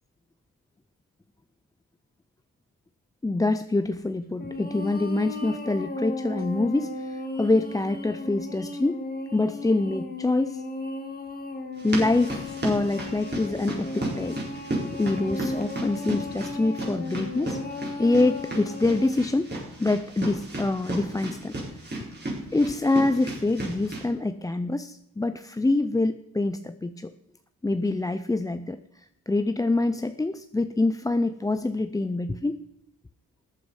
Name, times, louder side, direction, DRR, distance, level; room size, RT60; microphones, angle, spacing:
voice 1, 3.2-9.0 9.3-10.6 11.8-14.4 14.8-17.6 18.0-19.5 19.8-21.5 22.5-27.1 27.6-32.6, left 2 dB, 10° left, 10 dB, 0.4 m, -25 dB
sound 1, 4.4-19.1, left 2 dB, 25° left, 1.9 m, -36 dB
sound 2, 11.7-24.0, right 1 dB, 30° right, 4.4 m, -35 dB
14.0 x 9.6 x 5.5 m, 0.82 s
wide cardioid pair, 115°, 35 cm